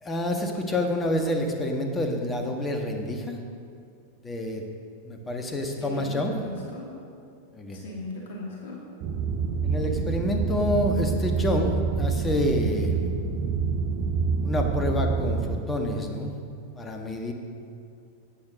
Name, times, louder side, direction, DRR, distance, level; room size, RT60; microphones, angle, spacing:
voice 1, 0.0-3.4 4.2-4.6 5.0-6.3 7.5-7.8 9.6-13.0 14.4-16.4 16.7-17.3, left 1 dB, 15° left, 3 dB, 1.4 m, -28 dB
voice 2, 5.6-6.9 7.7-8.8, left 2 dB, 55° left, -2 dB, 2.3 m, -38 dB
sound 1, 9.0-15.6, right 5 dB, 40° right, 0.8 m, -27 dB
13.0 x 8.8 x 5.2 m, 2.4 s
figure-of-eight pair, 90°, 0 cm